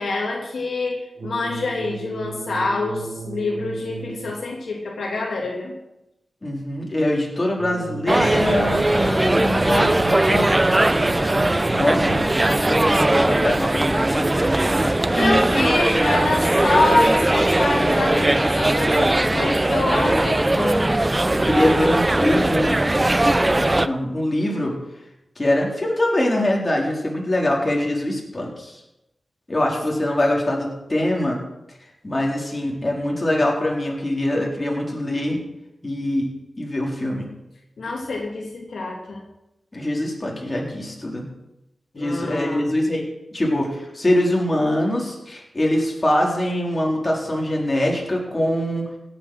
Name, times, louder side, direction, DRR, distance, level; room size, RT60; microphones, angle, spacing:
voice 1, 0.0-5.7 15.1-20.9 37.8-39.2 41.9-42.7, left 2 dB, 75° left, -1 dB, 2.6 m, -25 dB
sound 1, 1.2-4.6 7.6-12.6, right 4 dB, 60° right, 1.0 m, -35 dB
voice 2, 6.4-10.5 11.7-15.0 21.3-22.8 23.4-24.8 25.4-28.8 29.5-31.4 32.0-35.4 35.8-36.3 36.6-37.3 39.7-41.2 41.9-48.8, left 1 dB, 25° left, -2 dB, 4.0 m, -23 dB
sound 2, 8.1-23.9, right 1 dB, 20° right, 0.5 m, -19 dB
16.5 x 7.9 x 6.4 m, 0.90 s
wide cardioid pair, 85°, 0 cm